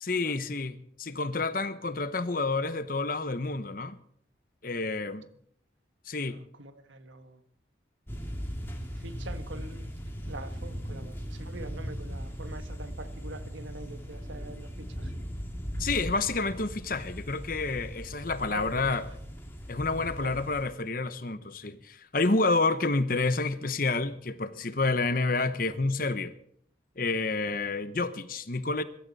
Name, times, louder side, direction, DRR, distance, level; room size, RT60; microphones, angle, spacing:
voice 1, 0.0-4.0 4.6-5.3 6.1-6.4 15.8-19.1 19.7-26.3 27.0-28.8, left 3 dB, 50° left, 1.0 m, -29 dB
voice 2, 6.1-7.4 8.9-9.9 10.3-15.1 18.5-18.8 20.2-20.4, right 2 dB, 85° right, 1.5 m, -44 dB
sound 1, 8.1-20.6, equal, 10° left, 2.4 m, -38 dB
23.0 x 13.0 x 4.2 m
head